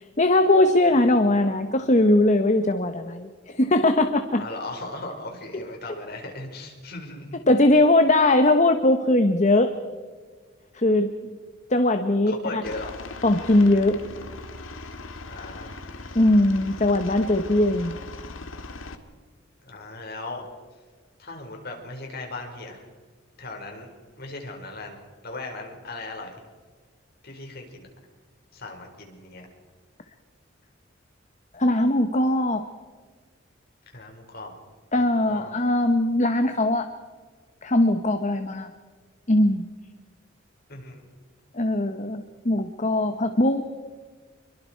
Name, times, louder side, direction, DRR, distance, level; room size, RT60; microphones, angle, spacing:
voice 1, 0.2-4.4 7.5-9.7 10.7-11.1 11.7-12.6 13.2-14.0 16.1-18.0 31.5-32.6 34.9-36.9 37.6-38.7 39.3-39.7 41.5-43.6, left 1 dB, 40° left, 7 dB, 1.1 m, -20 dB
voice 2, 4.4-7.4 12.3-12.9 15.3-15.8 19.6-20.4 21.2-22.9 23.4-23.9 24.2-25.0 25.2-26.4 27.2-27.9 28.5-29.5 33.9-34.5 35.1-35.5 40.7-41.0, left 2 dB, 55° left, 2 dB, 4.9 m, -37 dB
Aircraft, 12.6-18.9, left 3 dB, 90° left, 1.9 m, -39 dB
27.5 x 23.0 x 4.6 m, 1.5 s
head